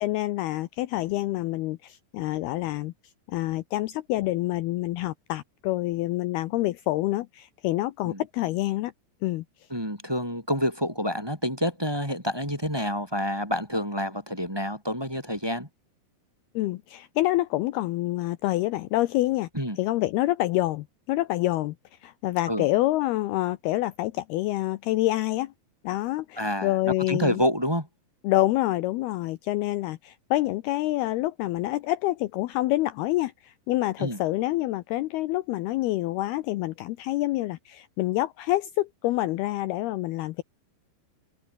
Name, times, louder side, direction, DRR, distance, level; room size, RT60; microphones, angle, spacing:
voice 1, 0.0-2.9 3.3-8.9 9.2-9.4 16.6-19.5 19.8-21.8 22.0-25.5 25.8-27.4 28.2-40.4, left 17 dB, 80° left, 2.5 m, -27 dB
voice 2, 9.7-15.7 19.5-19.8 22.5-22.7 26.4-27.9 34.0-34.2, equal, 5° right, 4.4 m, -28 dB
open air
omnidirectional pair, 5.1 m